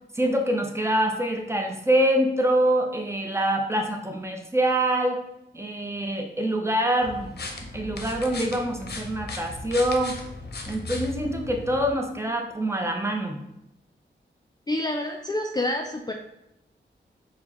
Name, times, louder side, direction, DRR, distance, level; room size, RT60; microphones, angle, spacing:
voice 1, 0.2-5.2 5.5-7.3 7.7-10.2 10.7-13.4, right 1 dB, 15° right, 3 dB, 0.7 m, -25 dB
sound 1, 7.0-11.9, left 3 dB, 55° left, 0.7 m, -37 dB
voice 2, 14.7-16.1, left 1 dB, 20° left, 2 dB, 0.4 m, -28 dB
4.4 x 2.2 x 4.2 m, 0.84 s
cardioid pair, 55°, 20 cm